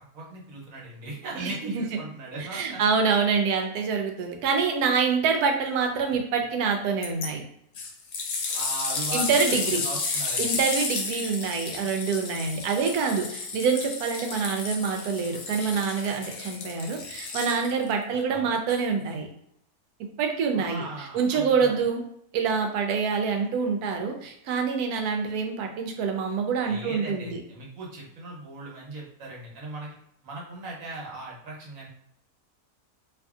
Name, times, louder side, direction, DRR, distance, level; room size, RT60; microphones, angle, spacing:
voice 1, 0.1-2.8 8.5-10.6 18.3-18.6 20.5-21.8 26.6-29.9 30.2-31.9, right 2 dB, 65° right, -3 dB, 1.3 m, -38 dB
voice 2, 1.4-1.8 2.4-7.4 9.1-9.8 10.4-19.3 20.2-22.0 22.3-27.4, right 5 dB, 85° right, 3 dB, 1.1 m, -26 dB
sound 1, 7.0-7.3 7.7-17.9 18.7-18.8, left 4 dB, 75° left, 1.0 m, -32 dB
2.8 x 2.5 x 2.3 m, 0.72 s
omnidirectional pair, 1.6 m